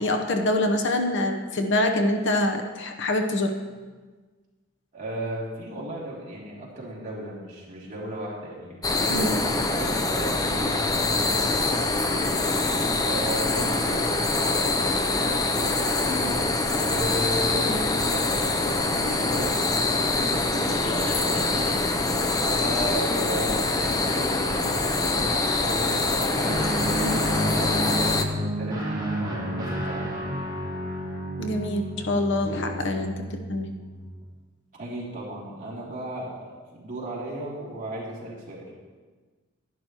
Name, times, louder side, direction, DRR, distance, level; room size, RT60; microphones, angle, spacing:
voice 1, 0.0-3.5 9.1-9.4 17.5-17.8 20.7-21.5 27.0-27.1 31.4-33.7, left 1 dB, 60° left, 4 dB, 0.9 m, -26 dB
voice 2, 4.9-12.3 12.6-16.4 16.8-21.9 22.4-30.4 34.7-36.3 36.7-38.6, right 1 dB, 40° right, -6 dB, 2.9 m, -35 dB
sound 1, 8.8-28.2, left 2 dB, 20° left, 0.6 m, -24 dB
Guitar, 26.4-34.1, equal, 20° right, 1.8 m, -31 dB
11.5 x 11.0 x 3.0 m, 1.4 s
head